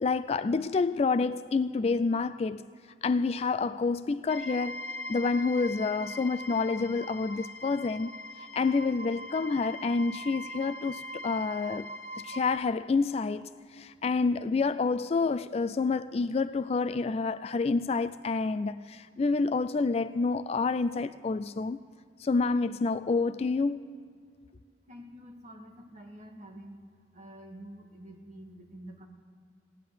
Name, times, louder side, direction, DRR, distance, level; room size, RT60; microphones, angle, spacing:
voice 1, 0.0-2.6 3.0-4.8 5.1-8.1 8.5-11.9 12.2-13.5 13.8-21.8 22.2-23.9, left 4 dB, 35° left, 0.3 m, -28 dB
sound 1, 4.3-12.6, left 1 dB, 75° left, 1.1 m, -41 dB
voice 2, 24.9-26.8 27.1-29.1, equal, 40° right, 2.2 m, -47 dB
17.0 x 10.5 x 7.0 m
head